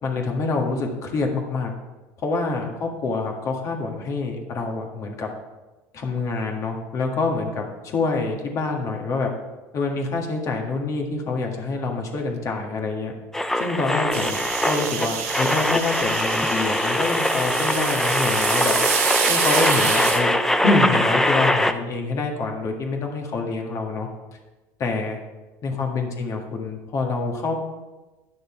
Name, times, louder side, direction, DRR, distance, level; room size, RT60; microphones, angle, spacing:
voice 1, 0.0-1.7 2.2-5.3 5.9-9.3 9.7-13.1 13.6-18.7 19.3-20.3 20.6-24.1 24.8-25.2 25.6-27.5, left 3 dB, 45° left, 2 dB, 1.8 m, -26 dB
sound 1, 13.3-21.7, left 1 dB, 5° left, 0.5 m, -22 dB
sound 2, 14.1-20.2, right 7 dB, 75° right, 1.3 m, -27 dB
10.0 x 6.5 x 4.5 m, 1.2 s
supercardioid pair, 100°, 8 cm